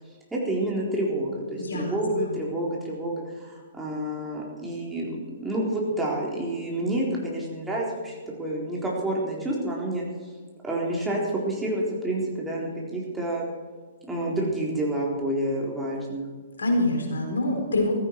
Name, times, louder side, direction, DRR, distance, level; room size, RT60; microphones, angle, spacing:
voice 1, 0.3-10.0 10.6-13.5 14.1-16.2, right 1 dB, 5° right, -4 dB, 3.9 m, -29 dB
voice 2, 1.6-2.3 16.6-17.9, left 2 dB, 70° left, 2 dB, 4.4 m, -26 dB
16.0 x 15.0 x 4.7 m, 1.5 s
figure-of-eight pair, 120°, 0 cm